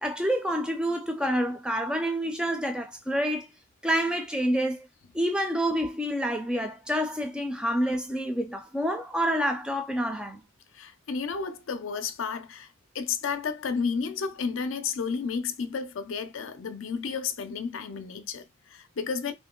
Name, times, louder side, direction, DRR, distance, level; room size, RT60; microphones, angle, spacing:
voice 1, 0.0-3.5 3.8-4.9 5.1-10.4, equal, 5° right, 0.4 m, -28 dB
voice 2, 10.7-19.3, left 5 dB, 70° left, 0.5 m, -32 dB
2.9 x 2.7 x 3.6 m
head